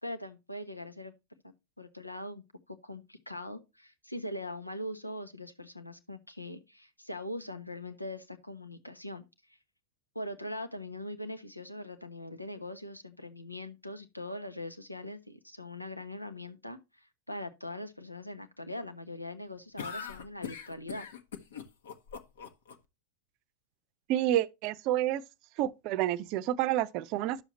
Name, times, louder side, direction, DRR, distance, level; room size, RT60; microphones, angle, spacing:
voice 1, 0.0-1.1 1.4-2.4 2.7-9.2 10.1-21.1, left 1 dB, 85° left, 1.1 m, -41 dB
sound 1, 19.8-22.7, left 7 dB, 60° left, 1.2 m, -41 dB
voice 2, 24.1-25.2 25.6-27.4, right 13 dB, 40° right, 0.6 m, -29 dB
11.0 x 7.0 x 2.9 m
figure-of-eight pair, 90°, 0 cm